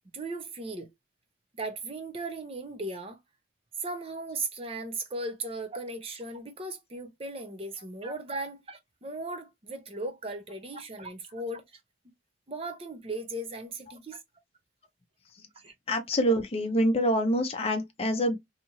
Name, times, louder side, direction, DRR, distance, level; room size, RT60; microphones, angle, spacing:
voice 1, 0.1-0.9 1.6-3.2 3.8-11.6 12.5-14.2 15.6-15.7, right 2 dB, 30° right, 0.6 m, -37 dB
voice 2, 15.9-18.4, equal, 30° left, 0.5 m, -26 dB
2.8 x 2.4 x 2.8 m
head